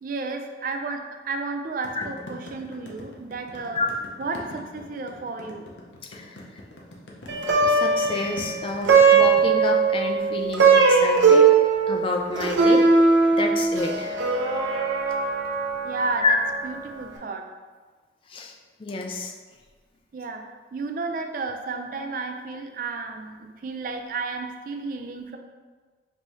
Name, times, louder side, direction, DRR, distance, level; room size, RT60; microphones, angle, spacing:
voice 1, 0.0-3.8 4.2-5.7 15.8-16.2 16.6-17.4 20.1-20.4 20.7-25.4, right 3 dB, 50° right, 4 dB, 0.3 m, -32 dB
sound 1, 1.8-9.4, left 1 dB, 80° left, 0.7 m, -42 dB
voice 2, 6.0-6.6 7.6-11.5 11.9-12.9 13.4-14.2 16.2-16.4 18.3-18.5 18.8-19.3, left 3 dB, 30° left, 2 dB, 0.3 m, -28 dB
Plucked string instrument, 7.3-16.7, right 4 dB, 85° right, 0.6 m, -20 dB
5.3 x 2.7 x 3.1 m, 1.4 s
head